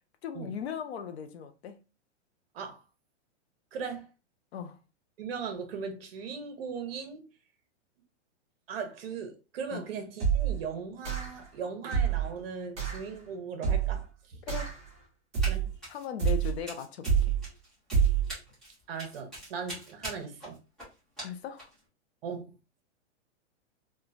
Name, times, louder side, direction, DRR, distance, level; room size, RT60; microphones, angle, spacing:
voice 1, 0.2-1.8 4.5-4.8 9.7-9.9 14.5-14.7 15.9-17.4 21.2-21.7, left 8 dB, 60° left, 0.5 m, -38 dB
voice 2, 3.7-4.1 5.2-7.3 8.7-14.4 15.5-15.7 18.9-20.6 22.2-22.6, right 6 dB, 55° right, 0.8 m, -38 dB
sound 1, 10.2-10.6 11.0-11.4 11.9-12.3 12.8-13.0 13.6-14.0 14.5-14.9 15.3-15.8 16.2-16.6 17.0-17.5 17.9-18.3, right 7 dB, 20° right, 1.1 m, -27 dB
Run, 15.4-15.6 15.8-21.8, equal, ahead, 0.4 m, -43 dB
3.0 x 2.2 x 2.4 m
supercardioid pair, 165°, 35 cm